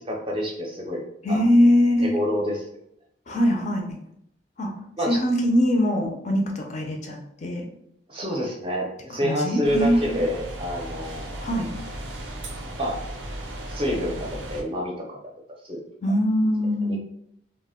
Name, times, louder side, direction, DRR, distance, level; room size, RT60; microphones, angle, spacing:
voice 1, 0.1-1.0 1.3-1.4 2.0-2.8 5.0-5.2 8.1-11.5 12.8-13.0 13.7-15.2 15.6-15.8 16.9-17.0, equal, 30° right, -1 dB, 0.5 m, -28 dB
voice 2, 1.2-2.1 3.3-4.0 4.6-4.7 5.1-7.7 9.1-10.2 11.4-11.7 16.0-17.0, equal, 40° left, 2 dB, 0.4 m, -22 dB
sound 1, 9.6-14.6, right 1 dB, 85° right, 0.5 m, -36 dB
2.1 x 2.1 x 3.4 m, 0.74 s
head